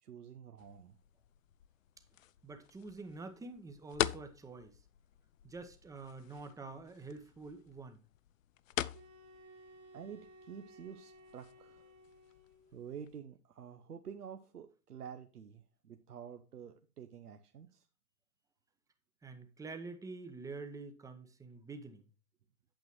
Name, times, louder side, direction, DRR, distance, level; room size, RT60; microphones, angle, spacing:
voice 1, 0.0-1.0 9.9-11.8 12.7-17.8, right 7 dB, 80° right, 0.9 m, -49 dB
sound 1, 0.6-13.2, left 12 dB, 60° left, 0.5 m, -44 dB
voice 2, 2.4-4.8 5.4-8.0 19.2-22.0, right 3 dB, 5° right, 0.9 m, -47 dB
sound 2, 8.9-12.8, equal, 40° right, 1.8 m, -58 dB
8.6 x 7.9 x 3.0 m
figure-of-eight pair, 105°, 45 cm